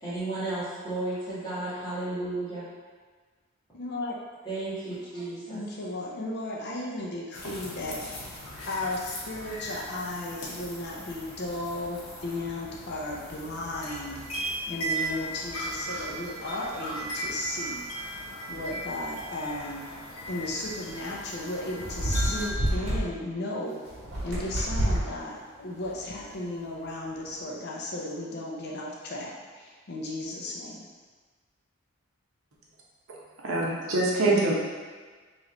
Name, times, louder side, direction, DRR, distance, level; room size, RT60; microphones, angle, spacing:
voice 1, 0.0-2.7 4.4-5.6 34.3-34.5, right 2 dB, 20° left, -12 dB, 1.5 m, -33 dB
voice 2, 3.7-4.2 5.5-8.4 8.7-14.2 14.7-17.8 18.5-19.9 20.3-23.8 24.2-30.9, left 2 dB, 50° left, -3 dB, 0.5 m, -35 dB
sound 1, 7.3-22.5, right 1 dB, 80° left, 0.9 m, -37 dB
sound 2, 20.8-21.0 21.8-23.0 23.9-25.1 25.8-26.2, right 1 dB, 65° right, 1.4 m, -28 dB
voice 3, 33.4-34.5, right 2 dB, 80° right, -4 dB, 0.8 m, -24 dB
3.1 x 3.0 x 3.7 m, 1.5 s
head